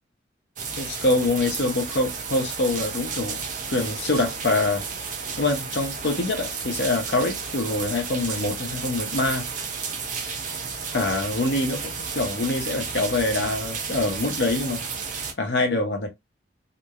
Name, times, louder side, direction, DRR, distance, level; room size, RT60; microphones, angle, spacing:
sound 1, 0.6-15.3, right 5 dB, 40° right, 0.5 m, -32 dB
voice 1, 0.8-3.4 3.7-4.9 5.4-9.5 10.9-14.8 15.4-16.1, left 2 dB, 60° left, 0.7 m, -25 dB
2.9 x 2.0 x 2.3 m
head